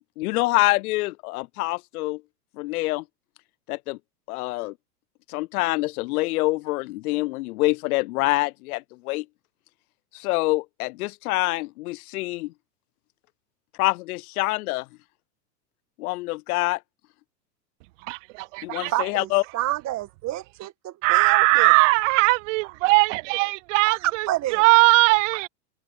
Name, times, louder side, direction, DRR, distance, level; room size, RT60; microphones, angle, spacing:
voice 1, 0.2-2.2 2.6-3.0 3.7-4.0 4.3-4.7 5.3-9.3 10.1-12.5 13.8-14.9 16.0-16.8 18.6-19.4, left 21 dB, 65° left, 0.6 m, -26 dB
voice 2, 18.1-18.9 21.0-25.5, right 25 dB, 50° right, 0.6 m, -20 dB
voice 3, 18.9-21.7 23.9-24.7, right 15 dB, 35° right, 1.9 m, -29 dB
hypercardioid pair, 115°, 49 cm